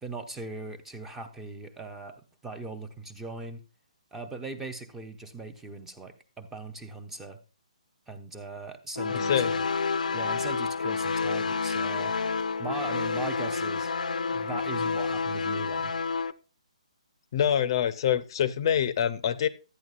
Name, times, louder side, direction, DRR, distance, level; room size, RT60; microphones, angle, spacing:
voice 1, 0.0-3.6 4.1-7.4 8.1-9.7 10.1-12.2 12.6-13.9 14.3-15.9, right 3 dB, 5° right, 8 dB, 0.6 m, -39 dB
sound 1, 9.0-16.3, left 4 dB, 85° left, 0.6 m, -29 dB
voice 2, 9.1-9.5 17.3-19.5, left 9 dB, 40° left, 14 dB, 0.6 m, -25 dB
12.0 x 8.8 x 2.4 m, 0.32 s
hypercardioid pair, 160°, 4 cm